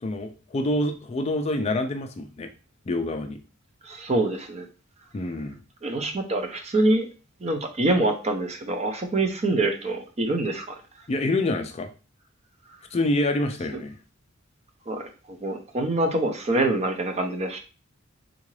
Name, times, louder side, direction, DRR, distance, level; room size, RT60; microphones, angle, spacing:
voice 1, 0.0-2.5 2.9-3.4 5.1-5.6 11.1-11.9 12.9-14.0, left 1 dB, 30° left, 6 dB, 0.4 m, -26 dB
voice 2, 3.9-4.6 5.8-7.1 7.4-10.7 14.9-15.1 15.4-17.6, right 2 dB, 30° right, 5 dB, 0.6 m, -25 dB
3.7 x 2.4 x 3.1 m, 0.34 s
head